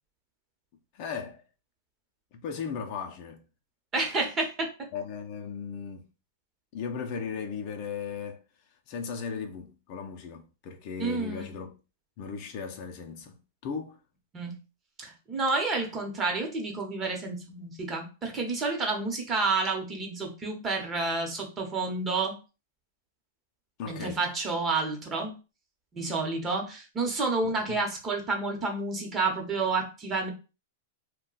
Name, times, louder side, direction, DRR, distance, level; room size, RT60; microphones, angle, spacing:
voice 1, 0.9-1.4 2.3-3.4 4.9-6.0 6.7-8.4 8.9-11.8 12.2-13.4 13.6-14.0 23.8-24.2 27.4-27.8, left 6 dB, 45° left, 0.5 m, -37 dB
voice 2, 3.9-4.7 11.0-11.5 14.3-14.6 15.0-22.3 23.8-25.3 25.9-30.3, right 3 dB, 25° right, 0.9 m, -30 dB
2.3 x 2.2 x 3.8 m
hypercardioid pair, 140°, 0 cm